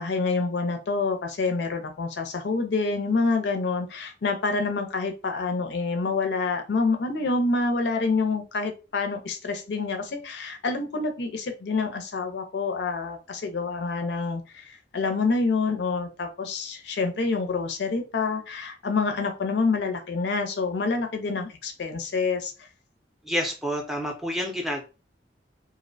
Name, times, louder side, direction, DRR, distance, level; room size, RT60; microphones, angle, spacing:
voice 1, 0.0-22.7, left 4 dB, 70° left, 5 dB, 0.5 m, -27 dB
voice 2, 23.2-24.8, equal, ahead, 1 dB, 0.4 m, -28 dB
2.5 x 2.0 x 2.6 m, 0.32 s
head